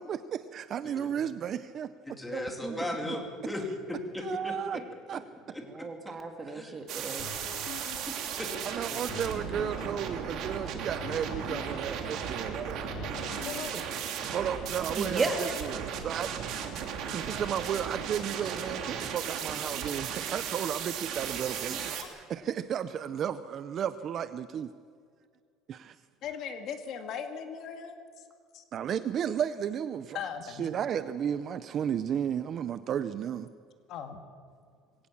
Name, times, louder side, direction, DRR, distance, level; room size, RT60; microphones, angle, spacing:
voice 1, 0.0-1.9 2.3-2.8 4.2-4.8 5.1-5.2 6.4-6.5 8.6-12.8 14.2-16.3 17.1-24.7 25.7-26.0 28.7-30.2 30.6-33.5, right 8 dB, 35° right, 13 dB, 0.6 m, -33 dB
voice 2, 2.1-3.6 3.9-4.8 5.5-5.9 6.5-6.7 8.1-9.0, left 1 dB, 5° left, 2 dB, 3.0 m, -37 dB
voice 3, 2.6-3.1 5.6-7.3 15.0-15.6 21.7-21.8, right 3 dB, 20° right, 5 dB, 1.9 m, -34 dB
sound 1, 6.9-22.0, right 7 dB, 55° right, 2.7 m, -36 dB
sound 2, 7.2-14.8, left 8 dB, 65° left, 2.3 m, -47 dB
voice 4, 13.5-13.9 22.0-22.1 26.2-28.3 28.5-28.6 30.1-30.7 33.9-34.2, left 7 dB, 50° left, 6 dB, 2.1 m, -39 dB
22.0 x 17.5 x 7.2 m, 2.1 s
cardioid pair, 155°, 0 cm